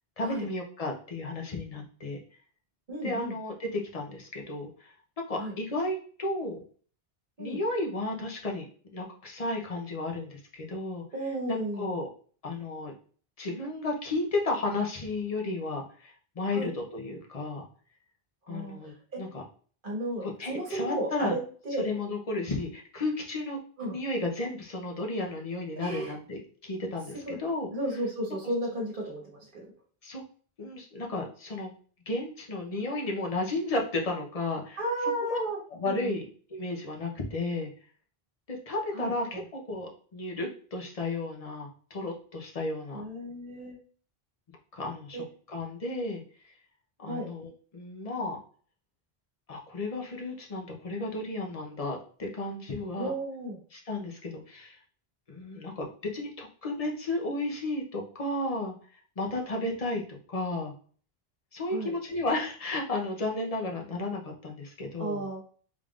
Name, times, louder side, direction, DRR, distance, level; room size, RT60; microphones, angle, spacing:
voice 1, 0.2-2.2 3.0-4.9 5.3-6.6 7.4-11.0 11.5-12.1 12.4-12.9 13.4-17.7 18.5-19.4 20.2-21.3 21.8-23.6 23.9-27.7 30.0-30.2 30.6-31.7 32.1-34.8 35.2-35.4 35.7-37.7 38.7-43.0 44.7-46.2 47.0-48.4 49.5-53.1 53.7-54.8 55.3-55.9 56.1-58.7 59.2-60.7 61.5-65.3, left 2 dB, 40° left, 1 dB, 0.8 m, -33 dB
voice 2, 2.9-3.3 5.4-5.5 7.4-7.6 11.1-12.0 16.5-16.7 18.5-19.2 19.8-21.4 21.6-21.9 23.8-24.0 25.8-26.1 27.3-27.4 27.7-29.7 34.8-35.6 35.8-36.1 38.9-39.4 42.9-43.8 45.1-45.2 47.0-47.3 53.0-53.6 61.7-61.9 65.0-65.4, right 1 dB, 55° right, -1 dB, 1.4 m, -33 dB
3.6 x 3.5 x 2.4 m, 0.43 s
omnidirectional pair, 1.0 m